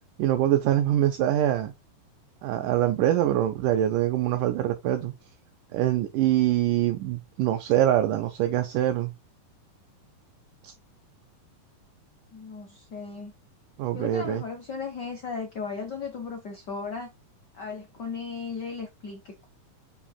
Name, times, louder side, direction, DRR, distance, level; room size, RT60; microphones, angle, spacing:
voice 1, 0.2-1.7 2.4-5.1 5.7-9.1 10.6-10.7 13.8-14.4, right 12 dB, 75° right, 2.3 m, -24 dB
voice 2, 12.3-13.3 13.9-17.1 17.5-19.5, left 5 dB, 65° left, 1.0 m, -36 dB
7.4 x 5.9 x 2.2 m
omnidirectional pair, 4.0 m